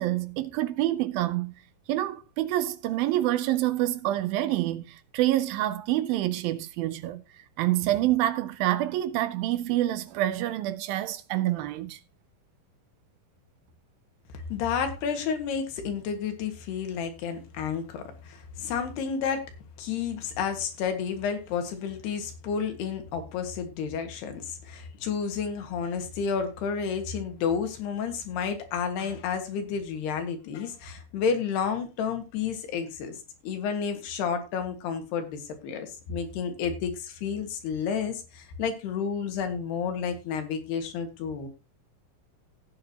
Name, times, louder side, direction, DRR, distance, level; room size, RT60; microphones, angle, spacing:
voice 1, 0.0-1.6 1.9-12.0, right 14 dB, 80° right, 2.3 m, -27 dB
voice 2, 14.5-19.5 19.8-41.5, left 6 dB, 85° left, 3.9 m, -31 dB
16.5 x 9.0 x 2.9 m
omnidirectional pair, 4.5 m